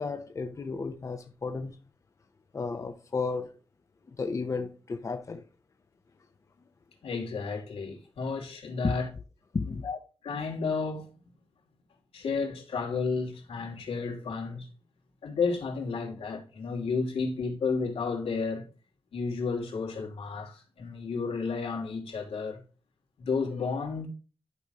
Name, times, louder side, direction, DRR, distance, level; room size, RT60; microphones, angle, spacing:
voice 1, 0.0-1.8 2.5-3.6 4.1-5.4 8.8-9.0 9.5-9.8, left 4 dB, 35° left, 0.7 m, -33 dB
voice 2, 7.0-9.1 9.7-11.1 12.1-14.7 15.2-18.6 19.1-22.6 23.2-24.1, left 4 dB, 85° left, 2.8 m, -32 dB
11.0 x 5.1 x 2.9 m
wide cardioid pair, 155°, 10 cm